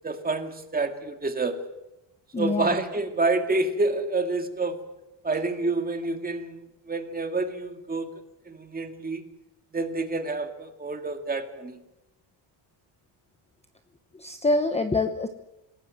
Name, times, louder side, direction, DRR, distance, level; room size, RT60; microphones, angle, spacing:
voice 1, 0.0-1.6 2.4-4.8 5.2-6.6 6.9-8.1 8.5-9.2 9.7-11.8, right 3 dB, 15° right, 6 dB, 2.2 m, -28 dB
voice 2, 2.3-2.7 14.2-15.3, left 2 dB, 15° left, 7 dB, 1.0 m, -25 dB
27.0 x 18.5 x 7.8 m, 0.93 s
cardioid pair, 175°, 50 cm